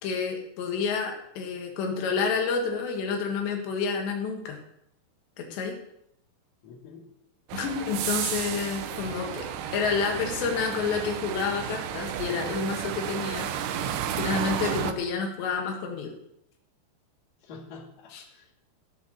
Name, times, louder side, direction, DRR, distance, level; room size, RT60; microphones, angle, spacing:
voice 1, 0.0-4.6 5.4-5.8 7.5-9.5 9.7-16.1 18.1-18.2, left 5 dB, 90° left, 1 dB, 4.0 m, -29 dB
voice 2, 6.6-7.1 8.9-9.5 14.5-14.9 17.4-18.6, left 3 dB, 55° left, -1 dB, 3.7 m, -46 dB
sound 1, 7.5-14.9, right 9 dB, 85° right, 1.9 m, -32 dB
15.0 x 7.6 x 6.5 m, 0.77 s
omnidirectional pair, 4.9 m